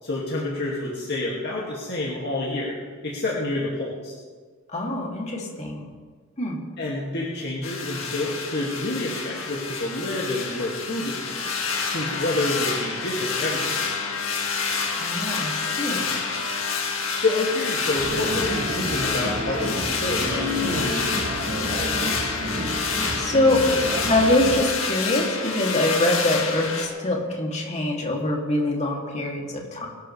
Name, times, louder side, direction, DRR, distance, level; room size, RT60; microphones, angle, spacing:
voice 1, 0.0-2.8 3.0-4.2 6.8-11.5 11.9-13.9 17.2-21.4, left 2 dB, 50° left, -5 dB, 2.3 m, -28 dB
voice 2, 4.7-5.9 6.4-6.6 15.0-16.2 23.2-23.6 24.1-29.9, left 1 dB, 35° left, -1 dB, 2.7 m, -24 dB
sound 1, 7.6-26.9, left 5 dB, 70° left, 2.2 m, -28 dB
sound 2, 18.0-24.6, equal, 40° right, 1.3 m, -30 dB
22.5 x 13.0 x 3.4 m, 1.5 s
head